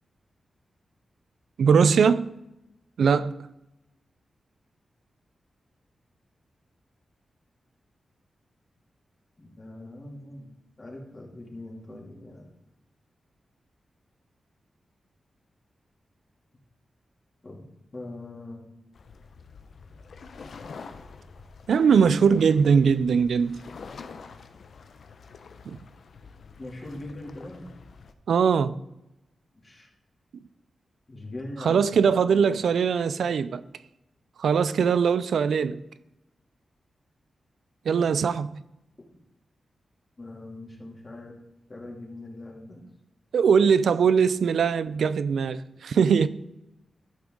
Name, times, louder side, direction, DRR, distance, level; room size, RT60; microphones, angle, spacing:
voice 1, 1.6-2.3 3.0-3.3 21.7-23.6 25.7-25.8 28.3-28.8 31.6-33.6 34.4-35.8 37.9-38.6 43.3-46.3, right 6 dB, 85° right, 0.4 m, -21 dB
voice 2, 9.4-10.5 10.8-12.4 17.4-17.6 17.9-18.6 26.6-27.7 29.6-29.9 31.1-32.6 40.2-41.4 41.7-42.8, left 2 dB, 35° left, 2.6 m, -41 dB
sound 1, 18.9-28.1, left 5 dB, 70° left, 0.7 m, -46 dB
13.0 x 6.0 x 3.8 m
cardioid pair, 85°, 0 cm